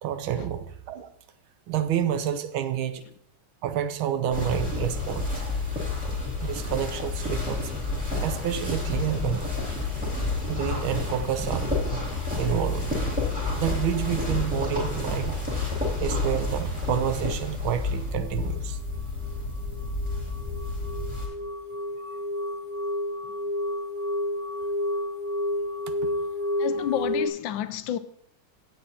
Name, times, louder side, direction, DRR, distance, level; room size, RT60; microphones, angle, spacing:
voice 1, 0.0-1.1 1.7-3.1 3.6-5.4 6.4-7.7 8.2-9.5 10.5-11.7 12.4-12.9 13.5-15.4 16.0-18.8 26.0-26.1, right 9 dB, 75° right, 1.5 m, -29 dB
sound 1, 4.3-21.3, left 3 dB, 5° right, 2.5 m, -30 dB
sound 2, 18.9-27.3, left 1 dB, 20° right, 2.9 m, -30 dB
voice 2, 26.6-28.0, left 11 dB, 75° left, 1.2 m, -29 dB
16.5 x 7.4 x 2.8 m
omnidirectional pair, 2.3 m